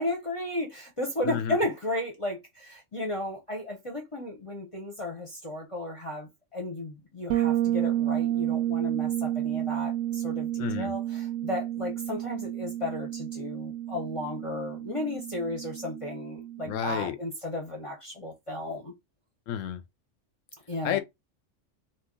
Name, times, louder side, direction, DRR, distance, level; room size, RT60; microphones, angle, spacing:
voice 1, 0.0-18.9 20.7-21.0, left 1 dB, 30° left, 0.6 m, -34 dB
voice 2, 1.2-1.6 10.6-10.9 16.7-17.2 19.5-19.8 20.8-21.0, left 9 dB, 85° left, 0.9 m, -30 dB
Bass guitar, 7.3-17.0, right 12 dB, 90° right, 0.9 m, -31 dB
2.8 x 2.3 x 3.6 m
omnidirectional pair, 1.3 m